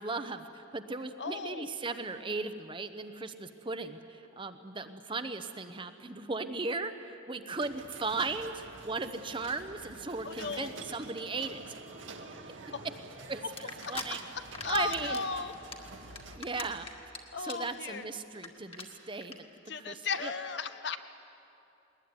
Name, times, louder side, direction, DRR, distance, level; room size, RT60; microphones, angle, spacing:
voice 1, 0.0-11.6 13.3-14.3 14.6-15.2 16.3-16.9 17.4-19.5 19.9-20.3, right 3 dB, 25° right, 9 dB, 0.9 m, -37 dB
voice 2, 1.2-1.7 10.2-10.7 12.7-12.9 14.6-15.5 17.3-18.0 19.7-21.0, left 5 dB, 65° left, 10 dB, 1.0 m, -35 dB
sound 1, 7.6-16.4, right 3 dB, 85° right, 1.8 m, -48 dB
sound 2, 13.6-14.0 14.4-15.2 15.5-17.2 17.4-17.7 18.0-18.1 18.3-18.5 18.7-18.8 19.2-19.3, left 4 dB, 30° left, 1.9 m, -40 dB
21.0 x 20.0 x 9.7 m, 2.8 s
head